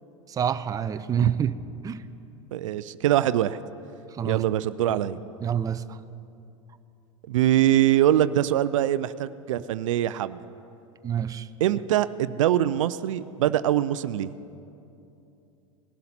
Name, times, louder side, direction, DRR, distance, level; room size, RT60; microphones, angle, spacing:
voice 1, 0.3-1.5 1.8-2.0 4.1-4.4 4.9-5.0 5.4-6.0 11.0-11.5, right 8 dB, 20° right, 12 dB, 0.5 m, -27 dB
voice 2, 2.5-3.6 4.2-5.2 7.3-10.4 11.6-14.3, right 12 dB, 75° right, 15 dB, 0.5 m, -23 dB
20.0 x 11.5 x 4.3 m, 2.7 s
hypercardioid pair, 90°, 17 cm